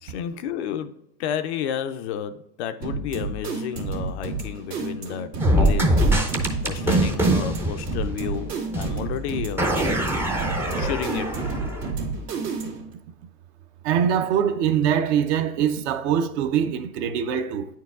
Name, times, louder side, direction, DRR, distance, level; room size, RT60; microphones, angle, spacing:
voice 1, 0.0-0.9 1.2-6.0 6.6-9.7 10.6-11.6, left 9 dB, 45° left, 0.5 m, -31 dB
sound 1, 2.8-12.9, right 4 dB, 90° right, 1.9 m, -31 dB
sound 2, 5.4-8.5 8.7-8.9 9.6-11.9, right 1 dB, 5° right, 0.5 m, -23 dB
voice 2, 13.8-17.7, right 8 dB, 45° right, 0.6 m, -23 dB
9.1 x 4.6 x 2.4 m
hypercardioid pair, 110°, 47 cm